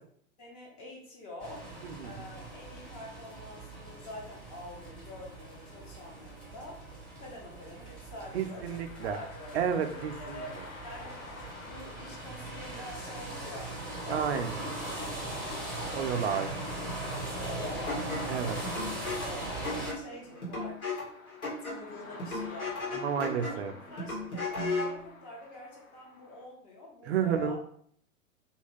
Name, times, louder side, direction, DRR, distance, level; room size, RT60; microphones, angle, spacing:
voice 1, 0.4-1.7 2.0-6.9 7.2-8.7 9.0-11.2 11.6-14.6 14.9-15.6 16.0-16.6 17.0-18.8 19.0-19.5 19.8-21.0 21.4-23.0 23.3-23.5 23.9-27.6, left 1 dB, 30° left, -2 dB, 0.8 m, -46 dB
sound 1, 1.4-19.9, right 1 dB, ahead, 0.7 m, -40 dB
voice 2, 1.8-2.2 8.3-9.2 9.5-10.4 14.1-15.0 15.9-16.5 18.3-18.6 22.9-23.7 27.1-27.6, right 8 dB, 50° right, 7 dB, 0.4 m, -31 dB
sound 2, 8.5-26.4, left 3 dB, 70° left, 0.8 m, -52 dB
sound 3, 17.9-25.0, left 3 dB, 85° left, 1.4 m, -36 dB
2.8 x 2.4 x 3.2 m, 0.62 s
figure-of-eight pair, 100°, 42 cm